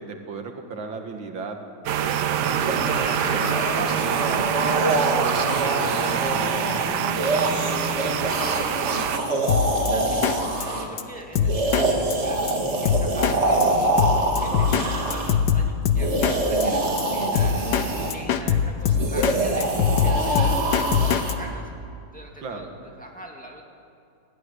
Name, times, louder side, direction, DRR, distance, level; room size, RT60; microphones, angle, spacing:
voice 1, 0.0-1.6 2.0-7.1 14.5-14.9 22.4-22.7, right 4 dB, 80° right, 4 dB, 2.5 m, -35 dB
sound 1, 1.9-9.2, right 8 dB, 65° right, 1.3 m, -25 dB
sound 2, 2.4-10.9 11.4-15.4 15.9-18.1 18.9-21.4, right 2 dB, 35° right, 2.2 m, -25 dB
voice 2, 7.8-8.8 9.7-13.9 14.4-19.7 20.0-21.7 22.1-22.7 23.0-23.6, right 1 dB, 5° left, 0 dB, 2.2 m, -42 dB
Drum kit, 9.5-9.9 10.2-10.4 10.6-10.7 11.0-11.1 11.4-11.9 12.1-12.2 12.5-12.6 12.9-13.4 13.6-13.7 14.0-14.9 15.1-16.4 16.6-16.7 17.0-17.1 17.4-17.9 18.1-19.4 19.6-21.3, left 8 dB, 65° left, 1.5 m, -21 dB
18.5 x 15.5 x 9.9 m, 2.5 s
omnidirectional pair, 2.1 m